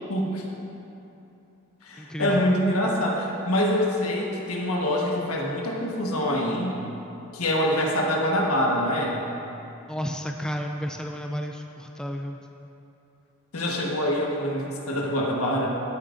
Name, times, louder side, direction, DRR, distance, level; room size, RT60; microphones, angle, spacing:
voice 1, 0.1-0.4 1.8-6.8 7.3-9.2 13.5-15.7, equal, 80° left, -2 dB, 1.4 m, -25 dB
voice 2, 2.0-2.5 9.9-12.4, equal, 5° left, 2 dB, 0.3 m, -32 dB
14.0 x 8.7 x 2.6 m, 2.9 s
head